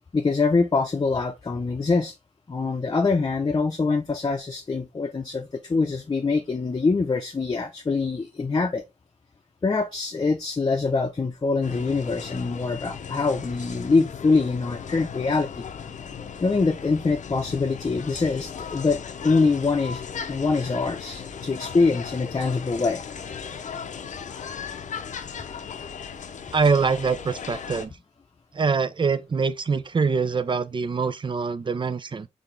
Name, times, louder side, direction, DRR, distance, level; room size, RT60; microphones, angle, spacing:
voice 1, 0.1-2.1 2.5-8.8 9.6-15.7 16.4-23.0, left 4 dB, 35° left, 0.6 m, -24 dB
sound 1, 11.6-27.9, left 7 dB, 80° left, 0.6 m, -37 dB
voice 2, 26.5-27.9 28.5-32.3, right 5 dB, 40° right, 0.4 m, -24 dB
4.1 x 3.4 x 3.3 m
cardioid pair, 75°, 13 cm